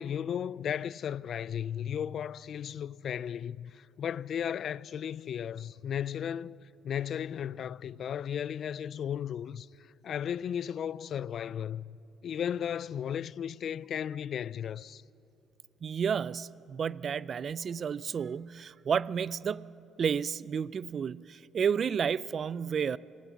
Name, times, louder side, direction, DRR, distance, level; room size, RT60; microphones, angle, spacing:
voice 1, 0.0-12.0 12.2-15.0, left 9 dB, 60° left, 0.4 m, -35 dB
voice 2, 15.8-19.7 20.0-23.0, right 7 dB, 50° right, 0.4 m, -31 dB
26.0 x 17.0 x 7.3 m
supercardioid pair, 65°, 0 cm